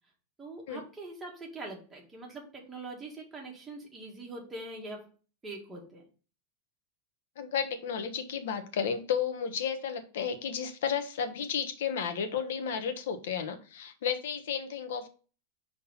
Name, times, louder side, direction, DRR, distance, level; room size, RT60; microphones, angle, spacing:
voice 1, 0.4-5.1 5.4-6.0, right 2 dB, 10° right, -2 dB, 1.8 m, -43 dB
voice 2, 7.4-15.1, left 7 dB, 70° left, 9 dB, 1.3 m, -32 dB
5.5 x 3.9 x 5.5 m, 0.37 s
supercardioid pair, 165°, 0 cm